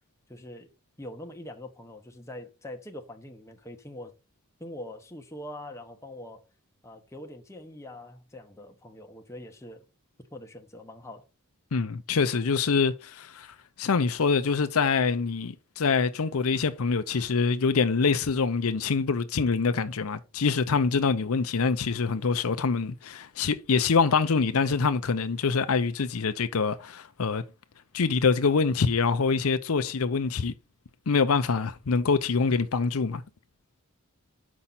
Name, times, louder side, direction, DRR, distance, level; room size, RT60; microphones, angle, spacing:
voice 1, 0.3-0.7 1.0-4.1 4.6-6.4 6.8-9.8 10.3-11.3, left 1 dB, 15° left, 1.1 m, -43 dB
voice 2, 11.7-27.4 27.9-30.5 31.1-33.2, left 5 dB, 75° left, 0.6 m, -25 dB
7.3 x 5.4 x 4.2 m
head